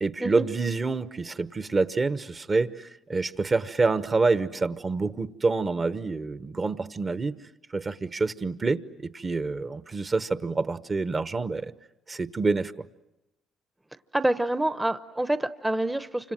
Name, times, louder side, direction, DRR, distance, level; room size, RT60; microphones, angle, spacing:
voice 1, 0.0-7.3 7.7-11.7 12.1-12.7, right 3 dB, 35° right, 1.1 m, -27 dB
voice 2, 14.1-16.3, right 1 dB, 10° right, 0.9 m, -27 dB
29.0 x 26.5 x 7.5 m
supercardioid pair, 65°, 0 cm